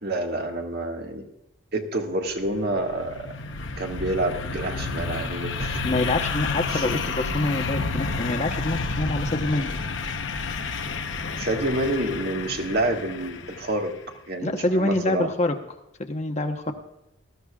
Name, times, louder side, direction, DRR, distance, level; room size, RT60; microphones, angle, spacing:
voice 1, 0.0-1.2 1.7-3.2 3.8-5.9 6.7-6.9 11.3-13.9 14.3-15.3, right 1 dB, 50° right, 2 dB, 1.6 m, -28 dB
sound 1, 2.3-14.0, left 4 dB, 60° left, 0.9 m, -30 dB
voice 2, 5.8-9.7 14.4-15.5 16.0-16.7, left 2 dB, 30° left, 5 dB, 1.0 m, -26 dB
19.5 x 13.5 x 2.4 m, 0.87 s
head